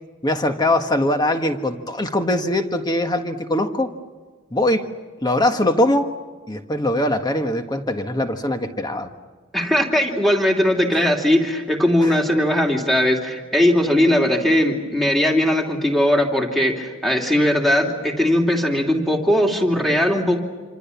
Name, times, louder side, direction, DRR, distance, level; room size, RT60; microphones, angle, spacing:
voice 1, 0.2-3.9 4.5-4.9 5.2-6.1 6.5-9.1 10.9-11.0 12.0-12.2, left 1 dB, 20° left, 6 dB, 1.5 m, -21 dB
voice 2, 9.5-20.4, left 1 dB, ahead, 0 dB, 2.7 m, -19 dB
27.0 x 26.0 x 7.1 m, 1.4 s
head